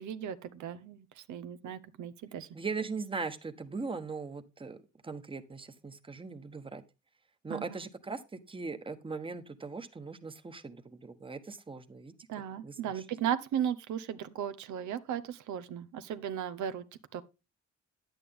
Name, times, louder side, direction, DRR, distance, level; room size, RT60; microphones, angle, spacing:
voice 1, 0.0-2.5 7.5-7.8 12.3-16.8 17.1-17.2, right 9 dB, 90° right, 0.9 m, -36 dB
voice 2, 2.5-6.8 7.4-12.1 12.6-13.0, right 4 dB, 20° right, 1.1 m, -40 dB
10.5 x 9.0 x 3.6 m
cardioid pair, 115°, 29 cm